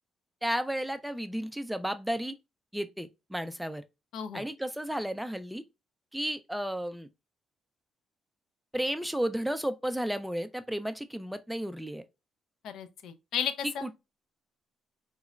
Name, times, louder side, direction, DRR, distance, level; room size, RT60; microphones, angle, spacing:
voice 1, 0.4-2.4 2.7-3.8 4.3-5.6 6.1-7.1 8.7-12.0 13.6-13.9, equal, 5° right, 0.4 m, -33 dB
voice 2, 4.1-4.4 12.6-13.8, left 8 dB, 80° left, 0.4 m, -34 dB
3.8 x 2.0 x 2.3 m
cardioid pair, 90°, 0 cm